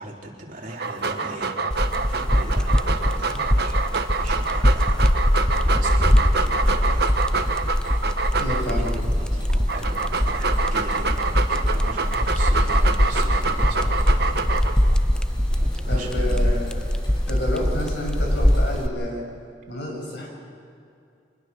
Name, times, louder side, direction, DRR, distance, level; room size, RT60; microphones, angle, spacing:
voice 1, 0.0-3.9 4.1-8.0 8.7-15.0 15.5-16.6, right 1 dB, 50° right, -2 dB, 3.9 m, -39 dB
Dog, 0.7-8.9 9.5-14.9, right 4 dB, 65° right, 1.3 m, -26 dB
sound 1, 1.7-18.9, equal, 5° left, 0.5 m, -22 dB
Mechanisms, 6.7-18.9, equal, 30° left, 5.1 m, -48 dB
voice 2, 8.4-8.9 15.9-16.8 17.1-19.2 19.7-20.3, left 1 dB, 75° left, 0 dB, 6.7 m, -29 dB
25.0 x 20.5 x 6.2 m, 2.4 s
head